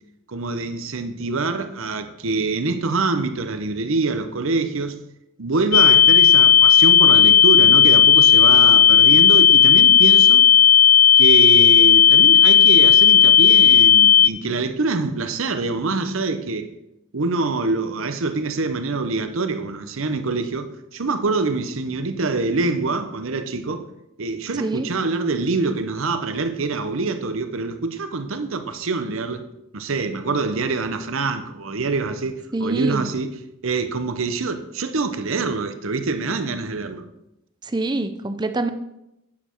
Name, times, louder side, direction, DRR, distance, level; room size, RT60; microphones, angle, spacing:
voice 1, 0.3-4.9 5.4-10.4 11.2-16.7 17.1-23.8 24.2-29.4 29.7-33.3 33.6-37.0, right 3 dB, 60° right, 0.8 m, -25 dB
sound 1, 5.7-14.3, left 9 dB, 40° left, 0.3 m, -12 dB
voice 2, 32.5-33.0 37.7-38.7, right 2 dB, 20° right, 0.5 m, -24 dB
9.5 x 6.8 x 4.5 m
head